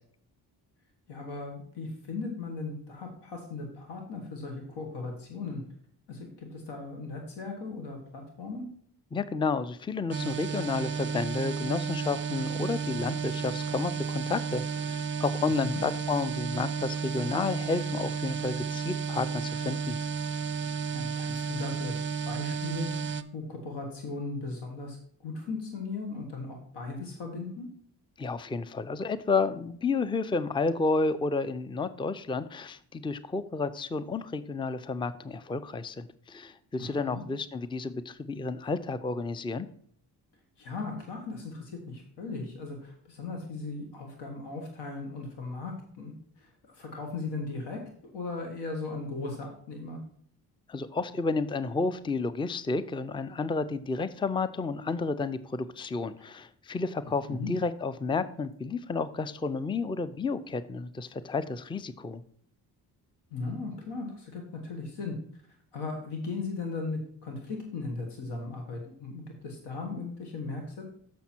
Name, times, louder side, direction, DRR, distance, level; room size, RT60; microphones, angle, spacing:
voice 1, 1.1-5.6 6.1-8.7 15.6-15.8 20.9-22.0 22.2-25.0 25.2-27.7 36.8-37.2 40.6-46.5 46.7-50.0 57.3-57.5 63.3-65.1 65.7-70.8, left 3 dB, 85° left, 3 dB, 1.6 m, -37 dB
voice 2, 9.1-20.0 28.2-39.7 50.7-62.2, left 4 dB, 10° left, 15 dB, 0.5 m, -31 dB
sound 1, 10.1-23.2, right 6 dB, 30° right, 0.6 m, -32 dB
7.1 x 6.2 x 4.4 m, 0.63 s
cardioid pair, 65°, 40 cm